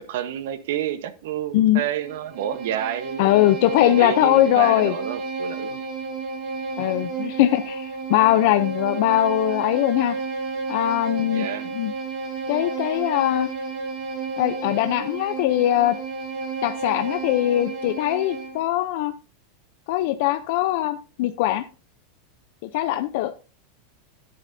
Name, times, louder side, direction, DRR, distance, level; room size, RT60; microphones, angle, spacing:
voice 1, 0.0-3.3 3.8-5.8 11.3-11.7, right 11 dB, 70° right, 1.0 m, -29 dB
Bowed string instrument, 2.0-18.6, right 4 dB, 40° right, 4.1 m, -31 dB
voice 2, 3.2-4.9 6.8-10.2 10.7-11.5 11.7-11.9 12.5-13.5 14.4-16.0 16.6-19.1 19.9-21.6 22.6-23.4, left 14 dB, 55° left, 0.6 m, -21 dB
11.0 x 10.0 x 2.7 m
supercardioid pair, 160°, 0 cm